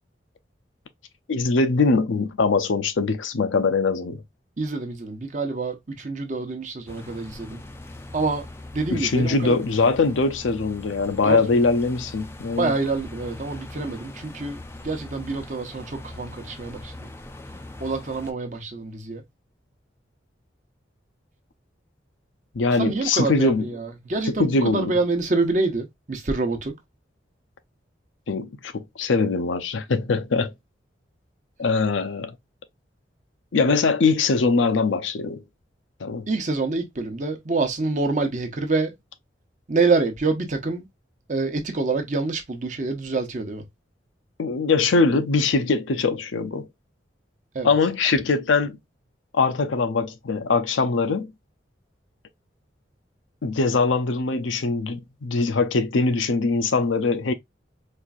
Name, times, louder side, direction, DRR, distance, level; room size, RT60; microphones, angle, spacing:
voice 1, 1.3-4.2 8.9-12.8 22.5-23.7 24.4-24.9 28.3-30.5 31.6-32.3 33.5-35.4 36.0-36.3 44.4-46.7 47.6-48.8 49.3-51.3 53.4-57.3, left 4 dB, 90° left, 0.6 m, -22 dB
voice 2, 4.6-7.6 8.1-8.5 8.7-9.6 11.2-11.6 12.6-17.1 17.8-19.2 22.8-26.7 36.3-38.9 39.7-40.9 41.3-43.6 47.5-47.7, right 3 dB, 40° right, 0.8 m, -26 dB
sound 1, 6.9-18.3, left 2 dB, 15° left, 0.4 m, -41 dB
4.3 x 2.6 x 2.4 m
head